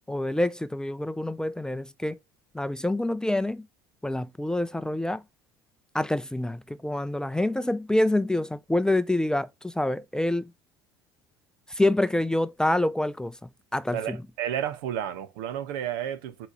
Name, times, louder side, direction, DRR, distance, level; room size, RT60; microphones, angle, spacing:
voice 1, 0.1-2.2 2.5-3.7 4.0-5.2 5.9-10.5 11.7-13.4 13.7-14.2, left 1 dB, 5° left, 0.5 m, -26 dB
voice 2, 13.9-16.5, right 10 dB, 70° right, 0.9 m, -31 dB
8.1 x 3.0 x 5.0 m
hypercardioid pair, 65°, 12 cm